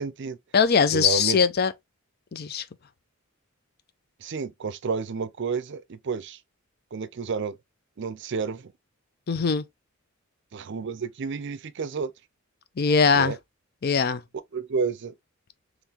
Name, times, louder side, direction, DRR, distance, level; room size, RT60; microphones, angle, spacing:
voice 1, 0.0-0.4 0.9-1.4 4.2-6.4 6.9-7.6 8.0-8.7 10.5-12.1 13.1-13.4 14.5-15.1, right 5 dB, 55° right, 0.5 m, -30 dB
voice 2, 0.5-1.7 2.3-2.6 9.3-9.6 12.8-13.3 13.8-14.2, left 5 dB, 45° left, 0.5 m, -21 dB
3.9 x 3.1 x 2.8 m
head